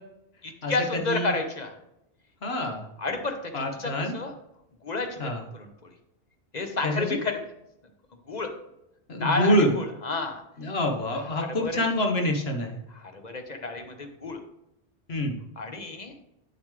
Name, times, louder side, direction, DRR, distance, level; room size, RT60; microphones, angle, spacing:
voice 1, 0.4-1.8 3.0-4.3 4.8-5.9 6.5-7.5 8.3-8.5 9.2-10.4 11.1-11.8 12.9-14.4 15.6-16.1, left 3 dB, 40° left, 5 dB, 1.1 m, -31 dB
voice 2, 2.4-2.8 3.5-4.1 5.2-5.4 6.8-7.2 9.1-9.7 10.6-12.8 15.1-15.4, equal, 65° left, 3 dB, 1.5 m, -26 dB
8.5 x 7.1 x 3.2 m, 0.84 s
omnidirectional pair, 1.1 m